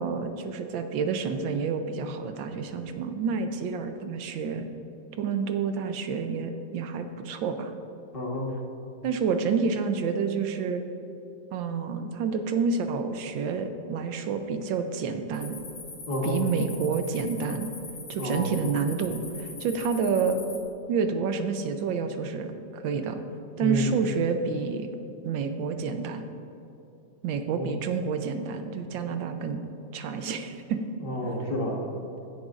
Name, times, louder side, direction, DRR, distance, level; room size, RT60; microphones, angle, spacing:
voice 1, 0.0-4.7 5.2-7.7 9.0-10.8 11.5-15.6 16.2-17.7 18.1-20.4 20.9-23.2 23.6-24.9 25.2-26.2 27.2-29.6 29.9-30.8, right 5 dB, 80° right, 7 dB, 1.4 m, -29 dB
voice 2, 8.1-8.5 16.1-16.4 18.2-18.5 23.6-23.9 27.5-27.7 31.0-31.9, left 1 dB, 30° left, -1 dB, 1.4 m, -29 dB
sound 1, 15.3-20.6, left 4 dB, 75° left, 2.3 m, -42 dB
16.0 x 9.0 x 2.5 m, 2.8 s
omnidirectional pair, 2.1 m